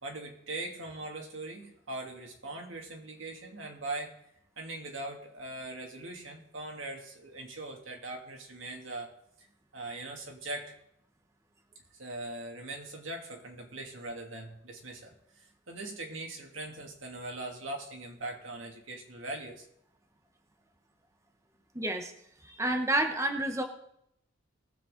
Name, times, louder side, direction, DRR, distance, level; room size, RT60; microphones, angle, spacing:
voice 1, 0.0-4.1 4.6-9.1 9.4-9.5 9.7-10.7 11.9-19.7, right 2 dB, 90° right, 1 dB, 2.6 m, -41 dB
voice 2, 21.7-22.1 22.4-23.6, right 1 dB, 15° right, 5 dB, 1.0 m, -29 dB
20.0 x 7.7 x 3.8 m, 0.74 s
head